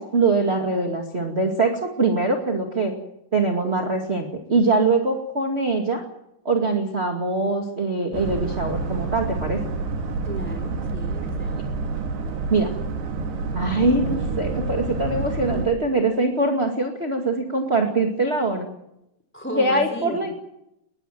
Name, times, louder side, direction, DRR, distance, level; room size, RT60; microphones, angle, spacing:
voice 1, 0.0-2.9 3.3-6.0 6.4-9.6 12.5-12.7 13.5-18.7 19.6-20.3, right 3 dB, 25° right, 2 dB, 1.4 m, -23 dB
Boat Water vehicle, 8.1-15.7, right 3 dB, 80° right, 4.3 m, -28 dB
voice 2, 10.2-11.7 19.3-20.3, equal, 5° left, 7 dB, 3.1 m, -34 dB
22.0 x 21.0 x 7.6 m, 0.81 s
omnidirectional pair, 4.7 m